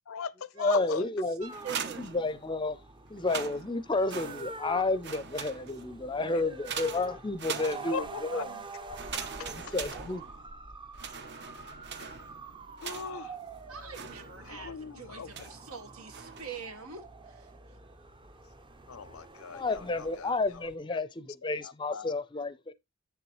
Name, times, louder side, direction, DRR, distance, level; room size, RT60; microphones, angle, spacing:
voice 1, 0.1-1.1 6.3-6.4 7.9-8.5 8.9-9.8 12.0-12.2 12.8-13.4 14.4-15.5 18.9-21.0 21.4-22.1, left 6 dB, 70° left, 0.5 m, -40 dB
voice 2, 0.6-1.5 2.0-2.8 3.1-8.0 8.3-8.4 9.4-10.2 19.5-22.7, left 3 dB, 20° left, 0.5 m, -31 dB
sound 1, 1.4-20.8, right 3 dB, 20° right, 0.6 m, -46 dB
sound 2, 1.5-2.7 3.1-4.7 5.0-6.0 6.6-8.2 8.9-10.6 10.9-13.3 13.9-14.7 15.3-15.7 16.1-16.6, right 6 dB, 50° right, 0.8 m, -41 dB
voice 3, 1.6-2.0 9.9-10.0 13.7-14.7 15.0-15.2 15.5-17.0, right 6 dB, 80° right, 1.6 m, -43 dB
8.4 x 6.9 x 3.1 m
head